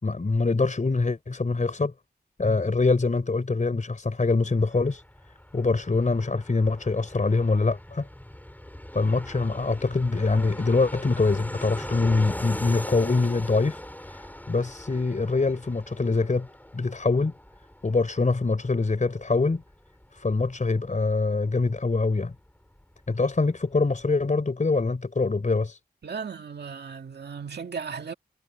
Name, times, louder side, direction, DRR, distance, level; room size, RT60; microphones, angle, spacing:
voice 1, 0.0-1.9 2.4-5.0 5.5-8.1 8.9-13.8 14.5-16.5 16.7-17.3 17.8-19.6 20.1-22.3 23.1-25.8, left 3 dB, 50° left, 4.3 m, -24 dB
Fixed-wing aircraft airplane, 4.4-22.8 23.1-23.2 23.4-24.1, left 1 dB, 10° left, 8.0 m, -40 dB
voice 2, 26.0-28.1, right 6 dB, 85° right, 2.1 m, -36 dB
wide cardioid pair, 65°, 17 cm